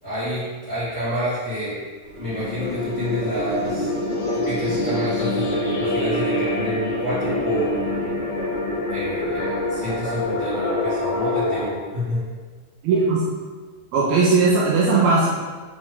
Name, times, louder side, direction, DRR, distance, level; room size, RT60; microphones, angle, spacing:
voice 1, 0.0-1.8 2.2-3.9 4.3-7.8 8.9-12.2, equal, 75° left, -13 dB, 0.6 m, -28 dB
sound 1, 2.0-11.6, left 1 dB, 60° left, 2.2 m, -25 dB
voice 2, 12.8-13.2 13.9-15.3, right 4 dB, 80° right, -4 dB, 2.3 m, -18 dB
7.2 x 3.9 x 3.7 m, 1.4 s
omnidirectional pair, 4.7 m